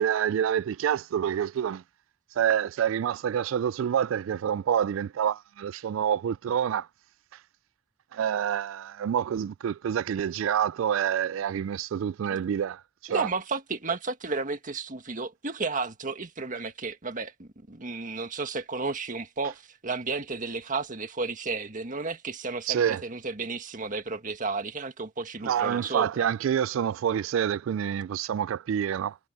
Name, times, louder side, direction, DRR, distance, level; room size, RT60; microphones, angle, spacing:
voice 1, 0.0-1.8 2.4-6.9 8.1-13.3 22.7-23.0 25.4-29.2, right 9 dB, 80° right, 0.3 m, -27 dB
voice 2, 13.1-26.2, right 4 dB, 40° right, 1.7 m, -33 dB
head